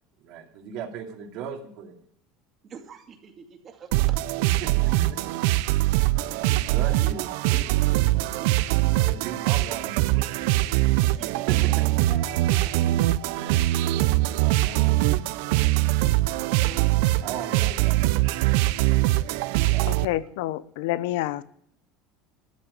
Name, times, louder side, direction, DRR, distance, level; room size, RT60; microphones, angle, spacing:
voice 1, 0.2-2.0 4.6-5.3 6.3-7.8 8.9-11.0 11.5-11.8 13.1-15.7 17.2-18.7 19.3-19.9, right 7 dB, 60° right, 1 dB, 2.4 m, -39 dB
voice 2, 2.6-4.4 4.8-5.4 6.2-6.3 7.5-7.6 7.9-8.6 11.0-13.0 16.6-17.0, right 7 dB, 35° right, 4 dB, 2.4 m, -45 dB
sound 1, 3.9-20.0, right 17 dB, 75° right, 0.6 m, -22 dB
voice 3, 19.9-21.4, left 15 dB, 80° left, 16 dB, 0.8 m, -28 dB
13.5 x 7.9 x 9.8 m, 0.66 s
supercardioid pair, 135°, 0 cm